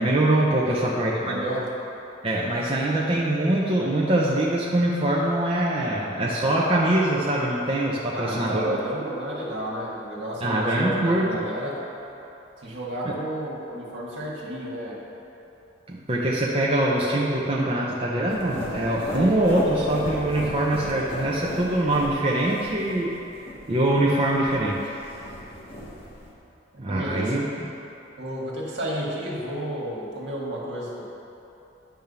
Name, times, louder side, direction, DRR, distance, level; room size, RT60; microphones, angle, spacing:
voice 1, 0.0-1.4 2.2-8.8 10.4-11.3 13.0-13.1 15.9-23.2 23.7-24.9 26.8-27.5, right 1 dB, 30° right, -5 dB, 0.7 m, -23 dB
voice 2, 0.7-1.7 8.1-11.8 12.6-15.0 25.7-25.9 26.7-27.4 28.2-31.0, right 1 dB, 65° right, -4 dB, 1.7 m, -32 dB
sound 1, 18.3-26.3, equal, 30° left, 1.4 m, -36 dB
10.5 x 3.6 x 6.7 m, 2.9 s
head